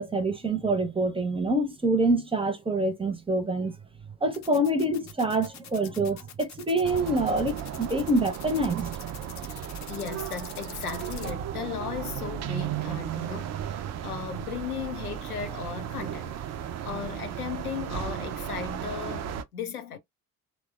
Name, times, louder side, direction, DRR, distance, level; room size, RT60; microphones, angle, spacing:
voice 1, 0.0-3.7 4.2-8.9, right 2 dB, 15° right, 0.7 m, -26 dB
sound 1, 4.3-11.3, left 9 dB, 40° left, 0.7 m, -45 dB
sound 2, 6.8-19.4, right 10 dB, 40° right, 0.5 m, -35 dB
voice 2, 9.9-16.4 16.8-20.0, left 7 dB, 85° left, 0.6 m, -36 dB
3.1 x 2.1 x 2.3 m
figure-of-eight pair, 45°, 43 cm